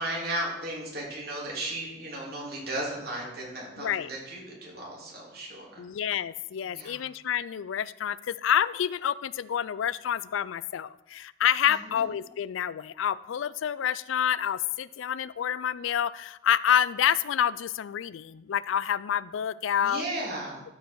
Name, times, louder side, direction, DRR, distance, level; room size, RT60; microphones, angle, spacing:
voice 1, 0.0-5.8 6.7-7.0 11.7-12.0 19.8-20.6, right 1 dB, 50° right, -4 dB, 3.2 m, -35 dB
voice 2, 3.8-4.1 5.8-20.0, left 9 dB, 90° left, 18 dB, 0.4 m, -28 dB
13.0 x 5.2 x 4.7 m, 0.88 s
head